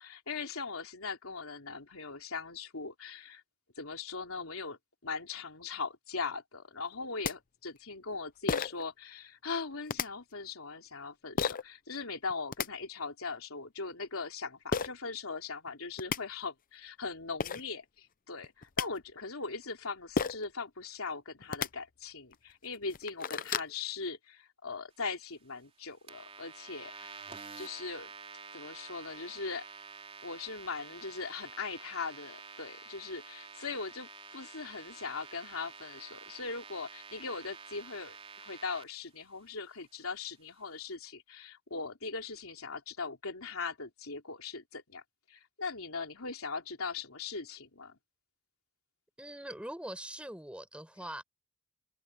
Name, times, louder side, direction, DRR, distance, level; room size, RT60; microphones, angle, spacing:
voice 1, 0.0-3.4 3.8-27.1 27.6-28.1 28.5-29.7 30.2-45.0 45.3-48.0, left 4 dB, 85° left, 3.4 m, -40 dB
sound 1, 6.9-7.0 7.2-7.3 8.5-8.8 9.9-10.1 11.4-11.6 12.3-12.7 14.7-14.9 15.7-15.8 16.0-16.2 17.1-17.2 17.4-17.6 18.4-18.9 20.2-20.5 21.4-21.7 22.3-22.4 22.8-23.7, left 5 dB, 40° left, 0.7 m, -32 dB
sound 2, 26.1-38.8, right 5 dB, 30° right, 3.6 m, -49 dB
voice 2, 49.2-51.2, right 1 dB, 5° right, 5.0 m, -42 dB
head